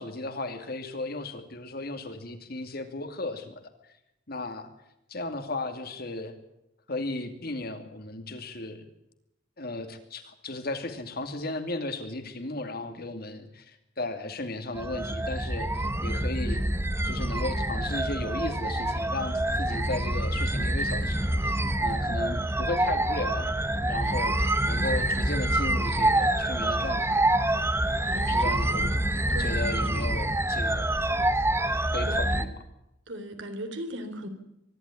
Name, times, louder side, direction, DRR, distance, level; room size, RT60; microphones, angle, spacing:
voice 1, 0.0-3.7 4.3-4.7 5.1-6.3 6.9-8.9 9.6-16.6 17.0-23.5 23.8-27.3 28.3-29.0 29.3-31.0 31.9-32.5, left 2 dB, 55° left, 8 dB, 2.6 m, -35 dB
sound 1, 14.7-32.5, right 1 dB, 15° right, 1.0 m, -26 dB
voice 2, 28.0-29.0 29.3-30.1 32.0-32.4 33.1-34.3, equal, 75° right, 7 dB, 3.4 m, -38 dB
24.0 x 12.0 x 9.8 m, 0.85 s
head